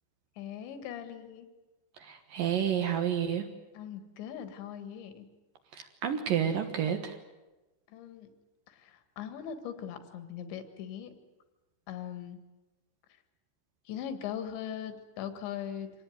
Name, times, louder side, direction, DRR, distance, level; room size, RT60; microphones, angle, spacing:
voice 1, 0.4-1.5 3.7-5.3 7.9-8.3 8.7-11.1 11.9-12.4 13.9-15.9, left 9 dB, 75° left, 9 dB, 3.9 m, -40 dB
voice 2, 2.0-3.4 5.7-7.1, right 9 dB, 60° right, 6 dB, 2.6 m, -30 dB
25.5 x 18.5 x 9.3 m, 1.1 s
omnidirectional pair, 5.3 m